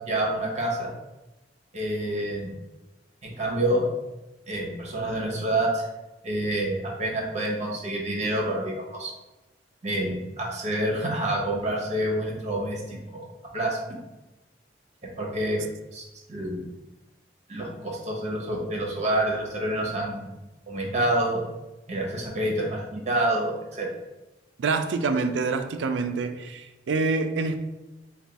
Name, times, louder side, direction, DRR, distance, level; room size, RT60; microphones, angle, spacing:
voice 1, 0.1-0.9 1.7-2.5 3.2-3.8 4.5-5.9 6.2-9.1 9.8-13.2 13.5-14.0 15.2-15.6 15.9-16.7 17.5-20.3 20.7-21.4 21.9-23.9, right 1 dB, 40° right, -2 dB, 0.9 m, -28 dB
voice 2, 24.6-27.6, right 4 dB, 75° right, 8 dB, 0.4 m, -26 dB
3.4 x 2.3 x 4.0 m, 1.0 s
head